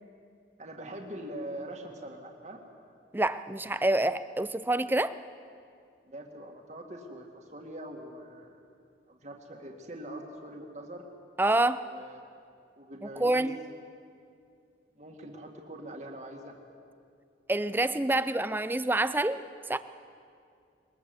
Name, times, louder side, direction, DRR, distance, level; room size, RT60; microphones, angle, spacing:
voice 1, 0.6-2.6 6.0-8.6 9.1-11.0 11.8-12.2 12.7-13.5 15.0-16.6, right 1 dB, 40° right, 2 dB, 2.0 m, -43 dB
voice 2, 3.1-5.2 11.4-11.9 13.0-13.6 17.5-19.4 19.7-19.8, right 2 dB, 10° right, 13 dB, 0.5 m, -27 dB
21.5 x 20.5 x 7.8 m, 2.4 s
head